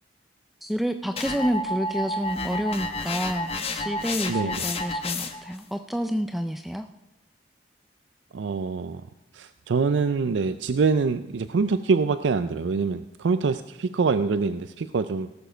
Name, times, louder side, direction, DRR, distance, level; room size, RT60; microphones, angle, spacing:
voice 1, 0.6-6.9, equal, ahead, 7 dB, 0.4 m, -29 dB
sound 1, 1.2-5.6, left 2 dB, 35° left, 1.0 m, -30 dB
voice 2, 4.3-4.6 8.3-9.0 9.3-15.3, right 4 dB, 90° right, 12 dB, 0.4 m, -25 dB
17.0 x 7.1 x 5.1 m, 1.0 s
head